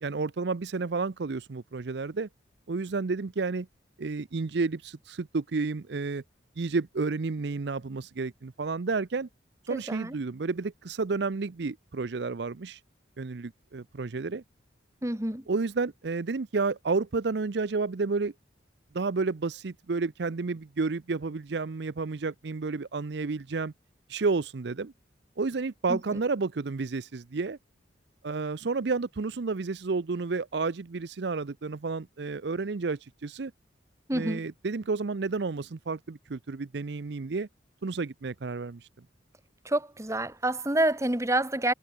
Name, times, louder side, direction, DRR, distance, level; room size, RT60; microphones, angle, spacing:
voice 1, 0.0-2.3 2.7-3.7 4.0-6.2 6.6-9.3 9.7-12.8 13.2-14.4 15.5-18.3 18.9-23.7 24.1-24.9 25.4-27.6 28.2-33.5 34.1-37.5 37.8-38.8, right 4 dB, 60° right, 0.6 m, -31 dB
voice 2, 9.7-10.1 15.0-15.4 25.9-26.0 34.1-34.4 39.6-41.7, right 1 dB, 15° right, 1.4 m, -28 dB
head